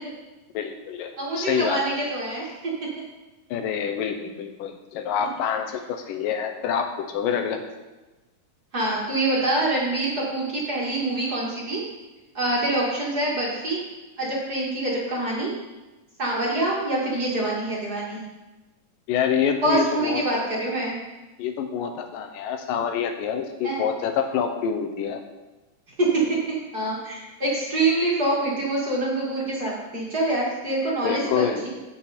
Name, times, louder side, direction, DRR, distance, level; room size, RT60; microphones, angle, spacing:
voice 1, 0.5-1.1 1.4-1.8 3.5-7.6 19.1-20.2 21.4-25.2 31.0-31.6, left 7 dB, 90° left, 6 dB, 2.6 m, -26 dB
voice 2, 1.2-3.0 8.7-11.8 12.3-13.8 14.2-15.5 16.2-18.2 19.6-21.0 23.6-23.8 26.0-26.2 26.7-31.7, right 2 dB, 35° right, -5 dB, 2.2 m, -25 dB
14.5 x 6.6 x 4.4 m, 1.1 s
omnidirectional pair, 3.7 m